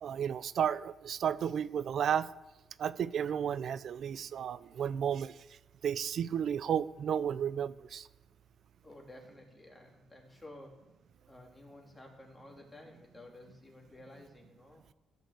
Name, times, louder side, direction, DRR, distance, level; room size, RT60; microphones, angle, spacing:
voice 1, 0.0-2.3 2.8-5.4 5.8-8.1, right 8 dB, 60° right, 16 dB, 0.5 m, -33 dB
voice 2, 8.8-10.8 11.3-14.8, left 1 dB, 15° left, 0 dB, 3.3 m, -53 dB
15.0 x 6.6 x 8.2 m, 1.1 s
cardioid pair, 90°, 0 cm